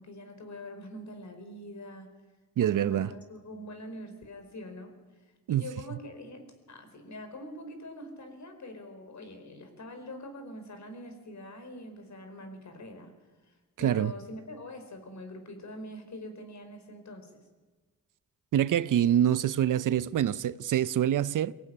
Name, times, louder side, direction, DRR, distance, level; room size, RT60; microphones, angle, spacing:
voice 1, 0.0-2.1 2.6-4.9 5.5-13.1 13.4-17.4, left 1 dB, 60° left, 4.7 m, -44 dB
voice 2, 2.6-3.1 5.5-5.6 13.8-14.1 18.5-21.5, right 10 dB, 70° right, 0.7 m, -25 dB
23.0 x 15.5 x 9.9 m
cardioid pair, 60°, 33 cm